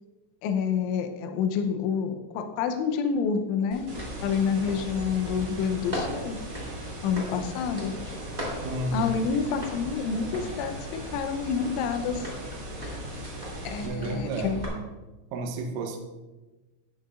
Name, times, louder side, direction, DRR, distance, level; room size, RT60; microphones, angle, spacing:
voice 1, 0.4-3.9 4.2-6.4 7.0-7.9 8.9-10.7 11.1-12.3 13.6-14.6, left 6 dB, 80° left, 6 dB, 3.1 m, -28 dB
sound 1, 3.7-14.7, equal, 20° right, 1.1 m, -39 dB
sound 2, 3.9-13.9, right 1 dB, 35° right, 2.7 m, -40 dB
voice 2, 8.6-9.1 13.8-14.9 15.3-16.0, right 2 dB, 80° right, 3 dB, 3.2 m, -31 dB
12.5 x 8.9 x 2.5 m, 1.1 s
omnidirectional pair, 5.8 m